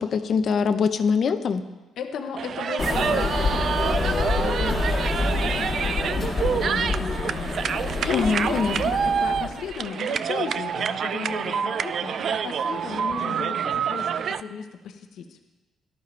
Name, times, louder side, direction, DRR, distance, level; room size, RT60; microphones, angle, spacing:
voice 1, 0.0-1.6 8.1-8.8, left 5 dB, 55° left, 9 dB, 0.8 m, -23 dB
voice 2, 2.0-7.6 8.0-15.4, left 7 dB, 75° left, 5 dB, 1.1 m, -35 dB
sound 1, 2.4-14.4, right 7 dB, 60° right, 0.4 m, -27 dB
sound 2, 2.8-9.7, left 3 dB, 30° left, 1.9 m, -27 dB
17.5 x 12.0 x 3.4 m, 1.2 s
cardioid pair, 90°, 0 cm